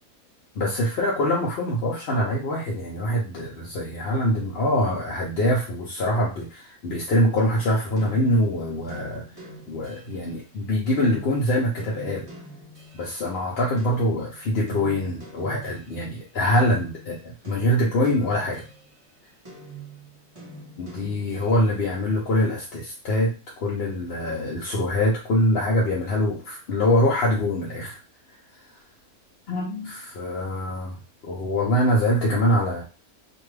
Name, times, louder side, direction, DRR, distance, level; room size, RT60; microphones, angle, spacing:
voice 1, 0.6-9.2 9.7-12.3 12.9-18.6 20.8-28.0 29.5-31.0 31.2-32.8, left 1 dB, 55° left, -4 dB, 0.7 m, -24 dB
sound 1, 8.0-13.3 13.8-19.1 19.4-21.8, right 2 dB, 25° right, 1.0 m, -44 dB
2.6 x 2.3 x 3.1 m, 0.32 s
omnidirectional pair, 1.6 m